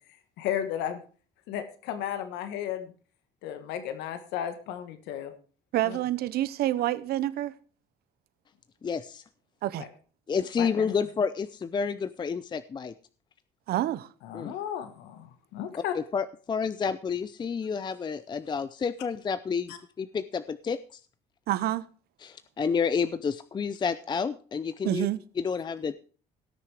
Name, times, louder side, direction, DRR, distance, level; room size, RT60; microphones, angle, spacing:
voice 1, 0.4-1.0 1.5-2.9 3.4-5.3 5.8-6.0 9.8-9.9 10.6-10.9 14.2-15.9 19.7-19.8, left 10 dB, 90° left, 1.4 m, -34 dB
voice 2, 5.7-7.5 9.6-9.9 13.7-14.1 21.5-21.9 24.8-25.2, right 14 dB, 70° right, 0.7 m, -28 dB
voice 3, 8.8-9.2 10.3-12.9 14.3-14.5 15.8-19.7 20.0-21.0 22.2-25.1 25.4-25.9, left 6 dB, 25° left, 0.5 m, -30 dB
17.5 x 6.6 x 4.8 m
cardioid pair, 110°, 17 cm